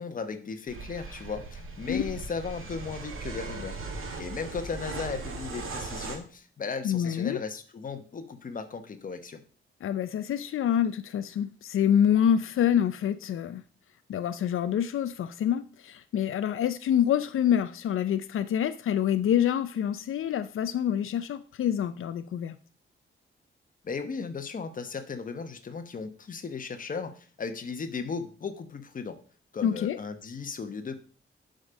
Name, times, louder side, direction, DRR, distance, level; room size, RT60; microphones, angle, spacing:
voice 1, 0.0-3.8 4.2-9.4 23.8-29.2 29.5-31.0, left 5 dB, 40° left, 8 dB, 1.2 m, -36 dB
sound 1, 0.7-6.2, right 3 dB, 90° right, 2.1 m, -38 dB
voice 2, 6.8-7.4 9.8-13.6 14.1-22.6 29.6-30.0, left 9 dB, 90° left, 11 dB, 0.5 m, -26 dB
11.0 x 5.3 x 5.2 m, 0.41 s
wide cardioid pair, 160°, 21 cm